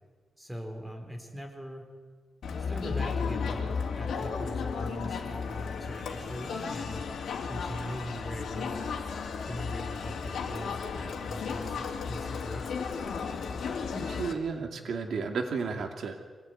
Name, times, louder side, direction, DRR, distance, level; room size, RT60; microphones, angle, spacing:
voice 1, 0.4-1.9 2.6-7.0 7.4-8.8 9.4-12.7, equal, 5° right, 3 dB, 3.9 m, -41 dB
Crowd, 2.4-14.3, left 5 dB, 90° left, 2.9 m, -34 dB
voice 2, 13.9-16.2, right 5 dB, 75° right, 4 dB, 2.4 m, -33 dB
25.5 x 18.5 x 9.4 m, 1.5 s
wide cardioid pair, 135°, 0 cm